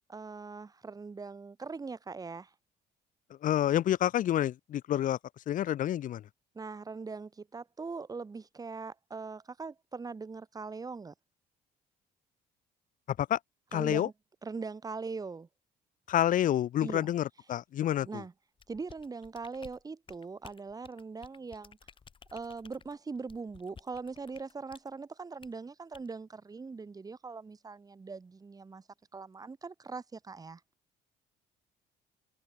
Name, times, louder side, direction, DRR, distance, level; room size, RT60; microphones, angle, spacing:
voice 1, 0.1-2.5 6.5-11.1 13.7-14.1 14.4-15.5 16.8-17.1 18.0-18.3 18.7-21.8 22.3-28.8 29.1-30.6, right 4 dB, 20° right, 1.6 m, -41 dB
voice 2, 3.4-5.2 5.5-6.2 13.2-13.4 13.7-14.1 16.1-18.2, left 11 dB, 50° left, 0.7 m, -28 dB
sound 1, 18.6-24.9 25.4-25.6 25.9-26.1, left 6 dB, 30° left, 1.5 m, -55 dB
open air
cardioid pair, 110°, 17 cm